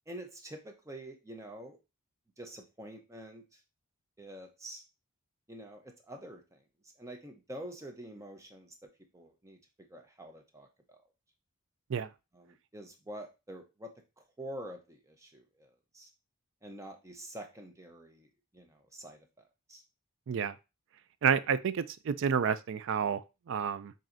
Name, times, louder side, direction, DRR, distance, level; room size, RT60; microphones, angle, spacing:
voice 1, 0.1-1.8 2.4-3.6 4.2-4.8 5.5-6.6 7.0-9.6 9.9-11.0 12.3-16.1 16.6-19.8, right 1 dB, 15° right, 0.7 m, -47 dB
voice 2, 21.2-23.9, right 7 dB, 60° right, 0.3 m, -30 dB
7.2 x 2.7 x 2.6 m
head